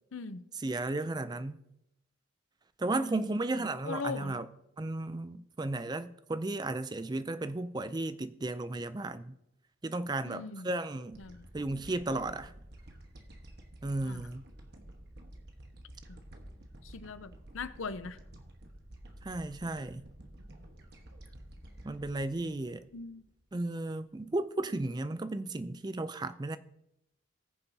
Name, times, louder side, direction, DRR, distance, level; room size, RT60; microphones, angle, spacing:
voice 1, 0.1-0.4 3.0-4.4 10.2-10.8 11.2-11.5 14.0-14.3 16.1-16.2 16.8-18.2 22.9-23.2, left 4 dB, 75° left, 0.7 m, -41 dB
voice 2, 0.6-1.6 2.8-4.5 4.8-9.3 9.8-11.2 11.5-12.5 13.8-14.4 19.2-20.0 21.8-22.8 23.5-26.6, right 2 dB, 20° right, 0.4 m, -34 dB
sound 1, 11.1-23.6, right 1 dB, 50° right, 1.3 m, -51 dB
20.0 x 6.9 x 2.8 m
head